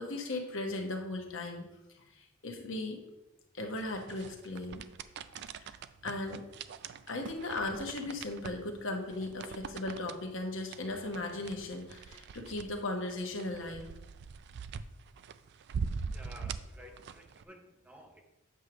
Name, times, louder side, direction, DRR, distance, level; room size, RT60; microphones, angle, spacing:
voice 1, 0.0-1.7 2.1-3.0 3.5-4.8 5.6-5.7 6.0-6.4 7.1-13.9, left 2 dB, 65° left, 3 dB, 1.0 m, -37 dB
sound 1, 3.8-17.4, right 5 dB, 55° right, 0.3 m, -43 dB
voice 2, 16.1-18.2, equal, 5° right, 2 dB, 0.7 m, -53 dB
8.1 x 3.2 x 6.0 m, 0.94 s
head